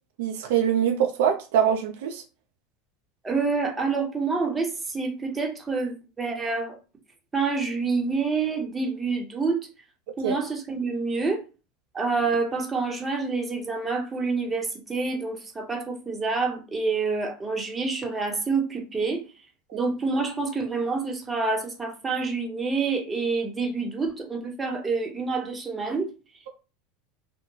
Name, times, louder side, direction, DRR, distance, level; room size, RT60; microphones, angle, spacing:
voice 1, 0.2-2.2 10.2-10.4 19.7-19.8, right 9 dB, 70° right, 0.3 m, -23 dB
voice 2, 3.2-6.8 7.3-9.7 10.2-11.4 11.9-19.2 19.7-26.1, right 4 dB, 20° right, 0.8 m, -27 dB
2.2 x 2.1 x 3.0 m
hypercardioid pair, 90°, 0 cm